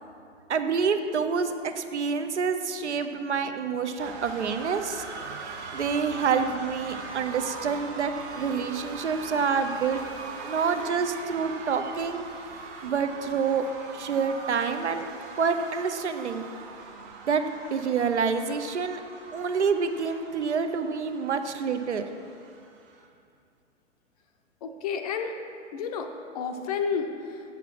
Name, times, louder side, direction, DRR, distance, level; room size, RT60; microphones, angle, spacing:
voice 1, 0.5-10.0 10.4-12.3 12.8-13.7 13.9-15.0 15.4-16.4 17.3-17.4 17.7-19.0 19.3-22.0, right 5 dB, 65° right, 8 dB, 0.7 m, -27 dB
sound 1, 4.0-23.1, right 4 dB, 15° right, 0.4 m, -41 dB
voice 2, 24.6-25.3 25.7-26.1 26.3-27.4, left 6 dB, 30° left, 5 dB, 0.6 m, -30 dB
8.4 x 6.8 x 6.0 m, 2.4 s
figure-of-eight pair, 110°, 37 cm